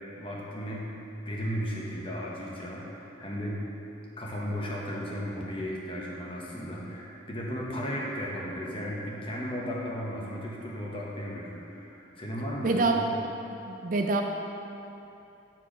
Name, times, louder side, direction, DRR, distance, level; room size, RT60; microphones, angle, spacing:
voice 1, 0.1-0.8 1.2-3.6 4.2-13.1, equal, 30° left, -4 dB, 1.1 m, -35 dB
voice 2, 12.6-13.0 13.7-14.2, right 3 dB, 45° right, 3 dB, 0.4 m, -25 dB
7.9 x 4.6 x 5.0 m, 2.9 s
head